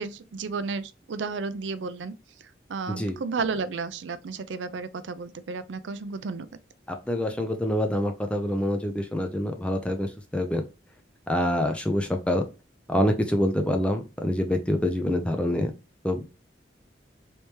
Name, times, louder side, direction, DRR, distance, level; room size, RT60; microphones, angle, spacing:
voice 1, 0.0-2.1 2.7-6.5, right 4 dB, 85° right, 0.4 m, -32 dB
voice 2, 6.9-10.6 11.3-12.4 12.9-15.7 16.0-16.2, left 1 dB, 5° left, 0.4 m, -26 dB
3.4 x 3.0 x 2.8 m
head